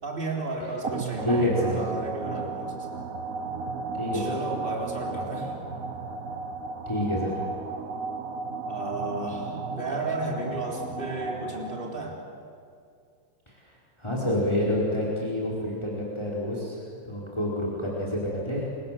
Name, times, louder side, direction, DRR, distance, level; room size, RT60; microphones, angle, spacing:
voice 1, 0.0-2.9 4.1-5.5 8.7-12.2, right 2 dB, 30° right, 0 dB, 4.0 m, -33 dB
sound 1, 0.8-12.2, right 4 dB, 50° right, 1.6 m, -34 dB
voice 2, 1.2-1.8 3.9-4.3 6.9-7.3 13.5-13.6 14.0-18.8, left 1 dB, 15° left, -4 dB, 4.8 m, -28 dB
30.0 x 25.5 x 7.8 m, 2.4 s
omnidirectional pair, 2.0 m